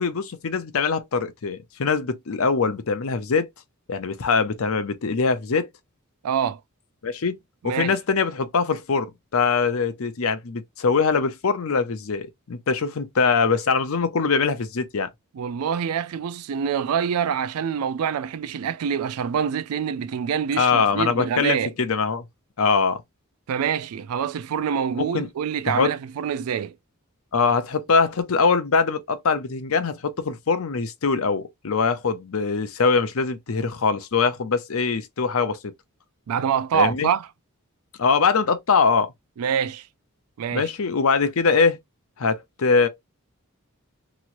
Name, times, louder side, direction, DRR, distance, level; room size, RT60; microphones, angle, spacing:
voice 1, 0.0-3.5 3.9-5.7 7.0-7.4 7.6-15.1 20.6-22.2 22.6-23.0 25.0-25.3 25.7-25.9 27.3-35.7 36.7-37.1 38.0-39.1 40.5-41.8 42.2-42.9, left 5 dB, 70° left, 0.6 m, -22 dB
voice 2, 6.2-6.6 7.6-8.0 15.3-21.7 23.5-26.7 36.3-37.3 39.4-39.9 40.4-40.7, right 7 dB, 90° right, 0.3 m, -25 dB
3.0 x 2.9 x 2.5 m
head